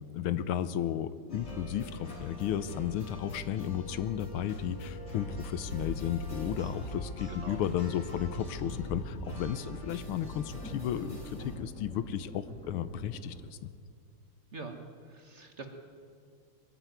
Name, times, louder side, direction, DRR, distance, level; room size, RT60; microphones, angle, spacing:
voice 1, 0.0-13.7, left 10 dB, 90° left, 14 dB, 1.6 m, -34 dB
sound 1, 1.3-11.6, left 1 dB, 35° left, 3.9 m, -44 dB
sound 2, 4.8-13.5, equal, 5° left, 1.9 m, -44 dB
voice 2, 7.3-7.6 14.5-15.7, right 3 dB, 35° right, 4 dB, 1.7 m, -44 dB
22.5 x 12.5 x 9.4 m, 2.2 s
omnidirectional pair, 2.3 m